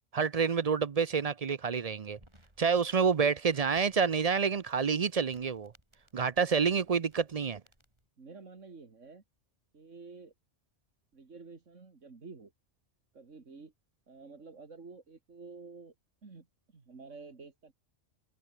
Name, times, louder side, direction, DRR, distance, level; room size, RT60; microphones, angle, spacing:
voice 1, 0.1-2.2 2.6-5.7 6.1-7.6, right 6 dB, 40° right, 0.6 m, -28 dB
sound 1, 2.1-8.1, equal, 25° right, 8.3 m, -66 dB
voice 2, 8.2-9.2 9.7-10.3 11.1-12.5 13.1-13.7 14.1-15.9 16.2-16.5 16.7-17.7, right 4 dB, 90° right, 2.8 m, -50 dB
omnidirectional pair, 1.2 m